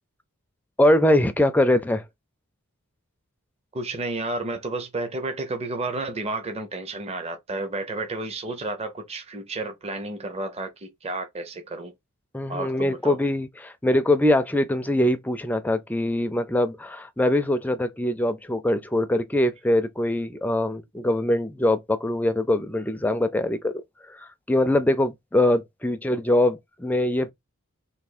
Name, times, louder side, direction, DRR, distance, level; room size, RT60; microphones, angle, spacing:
voice 1, 0.8-2.0 12.3-23.8 24.1-27.3, left 1 dB, 10° left, 0.4 m, -23 dB
voice 2, 3.7-11.9 12.5-13.2, right 2 dB, 30° right, 0.8 m, -31 dB
3.5 x 2.7 x 4.2 m
head